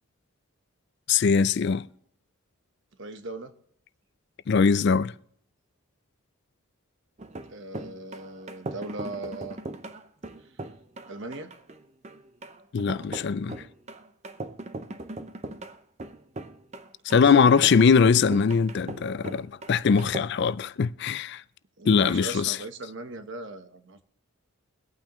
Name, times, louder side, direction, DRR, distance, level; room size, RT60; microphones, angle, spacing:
voice 1, 1.1-1.9 4.5-5.1 12.7-13.6 17.1-21.4 21.9-22.6, left 5 dB, 50° left, 0.4 m, -21 dB
voice 2, 3.0-3.5 7.5-9.6 11.1-11.5 17.1-17.4 21.8-24.0, right 2 dB, 55° right, 1.0 m, -39 dB
sound 1, 7.2-20.2, right 2 dB, 30° right, 0.6 m, -39 dB
23.5 x 8.8 x 3.0 m
head